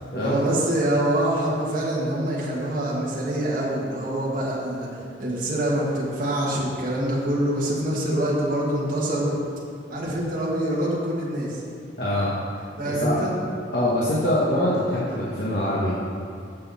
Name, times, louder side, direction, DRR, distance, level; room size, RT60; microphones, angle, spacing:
voice 1, 0.2-4.9 5.2-9.3 9.9-11.6 12.8-13.3, right 1 dB, 45° right, -6 dB, 1.9 m, -25 dB
voice 2, 12.0-13.1 13.7-15.9, left 1 dB, 55° left, -8 dB, 1.5 m, -24 dB
13.5 x 6.7 x 4.2 m, 2.3 s
head